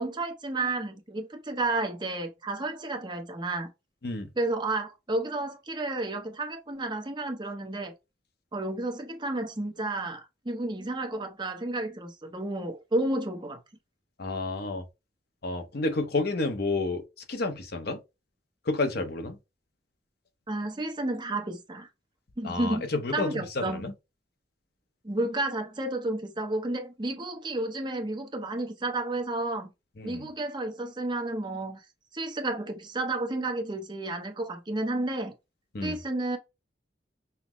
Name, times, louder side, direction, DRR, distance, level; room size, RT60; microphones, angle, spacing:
voice 1, 0.0-3.7 4.4-7.9 8.5-13.6 20.5-21.9 22.4-22.9 23.1-23.8 25.0-29.7 30.0-31.8 32.1-35.3 35.8-36.4, right 2 dB, 25° right, 0.8 m, -31 dB
voice 2, 14.2-14.8 15.4-17.0 17.3-18.0 18.7-19.4 22.4-23.9 30.0-30.3 35.7-36.0, left 2 dB, 60° left, 0.8 m, -30 dB
5.7 x 2.1 x 3.0 m
head